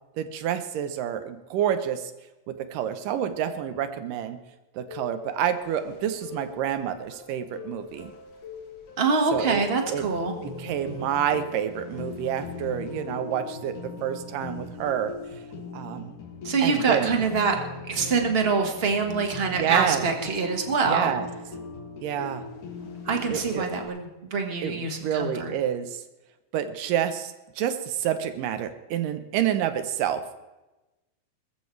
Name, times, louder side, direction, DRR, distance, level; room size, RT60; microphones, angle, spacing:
voice 1, 0.2-2.1 2.5-4.4 4.8-8.1 9.3-9.6 9.9-10.1 10.6-15.1 15.7-16.1 16.6-17.2 19.6-20.1 20.8-21.3 22.0-22.4 23.3-23.7 24.6-26.0 26.5-30.2, right 9 dB, 85° right, 10 dB, 2.5 m, -28 dB
sound 1, 4.9-23.9, left 5 dB, 65° left, 3.5 m, -40 dB
voice 2, 9.0-10.3 16.4-17.6 17.9-21.1 23.0-25.5, right 4 dB, 40° right, 4 dB, 0.8 m, -25 dB
20.0 x 14.5 x 3.2 m, 1.1 s
omnidirectional pair, 3.7 m